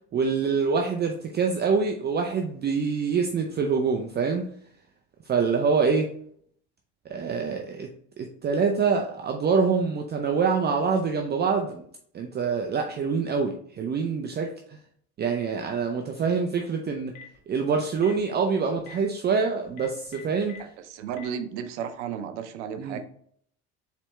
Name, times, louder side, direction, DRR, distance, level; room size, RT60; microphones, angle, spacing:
voice 1, 0.1-4.5 5.3-6.1 7.1-7.9 8.2-11.8 12.1-14.8 15.2-17.1 17.5-20.6 22.8-23.0, right 5 dB, 30° right, 3 dB, 0.5 m, -25 dB
Telephone, 16.9-17.4 17.9-18.2 18.8-18.9 19.7-20.6 21.1-21.2, left 7 dB, 85° left, 1.2 m, -45 dB
voice 2, 20.8-23.0, right 8 dB, 90° right, 9 dB, 0.6 m, -33 dB
4.4 x 3.4 x 3.1 m, 0.63 s
supercardioid pair, 80°, 34 cm